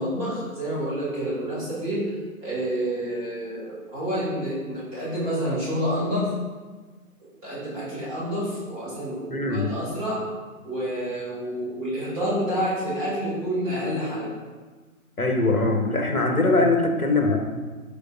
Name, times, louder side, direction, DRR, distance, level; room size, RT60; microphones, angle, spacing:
voice 1, 0.0-2.1 2.4-6.3 7.4-10.2 10.6-14.3, equal, 15° right, -8 dB, 2.2 m, -28 dB
voice 2, 9.3-9.7 15.2-17.4, left 2 dB, 85° left, 4 dB, 1.3 m, -22 dB
13.0 x 5.1 x 2.5 m, 1.4 s
figure-of-eight pair, 140°, 43 cm